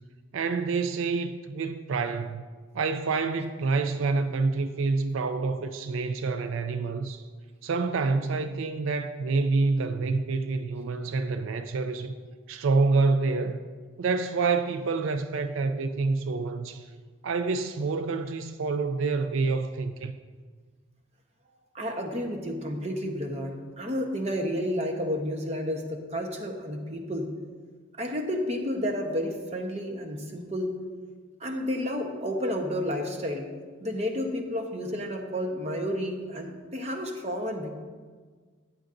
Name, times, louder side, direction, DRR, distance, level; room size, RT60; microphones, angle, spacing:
voice 1, 0.3-2.4 2.7-7.2 7.6-12.1 12.5-13.6 14.0-16.9 17.2-20.1, right 4 dB, 85° right, 0.4 m, -27 dB
voice 2, 21.7-27.3 28.0-30.7 31.4-33.5 33.8-37.7, equal, 30° right, 1.0 m, -31 dB
13.5 x 8.9 x 2.6 m
head